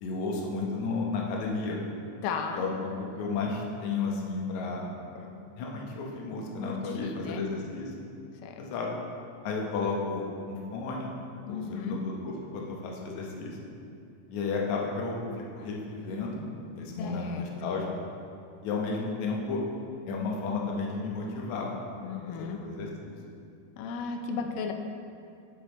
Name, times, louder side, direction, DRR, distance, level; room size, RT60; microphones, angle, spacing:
voice 1, 0.0-1.8 2.6-5.3 5.6-7.9 8.6-8.9 9.4-11.2 11.5-13.6 14.3-16.4 16.7-17.9 18.6-19.6 20.1-21.7 22.3-23.2 24.3-24.4, left 4 dB, 70° left, -2 dB, 2.1 m, -33 dB
voice 2, 2.2-2.6 6.6-7.4 8.4-8.7 11.5-12.0 17.0-17.5 22.0-22.6 23.8-24.7, left 5 dB, 90° left, 5 dB, 2.3 m, -35 dB
8.2 x 6.3 x 4.0 m, 2.4 s
omnidirectional pair, 3.9 m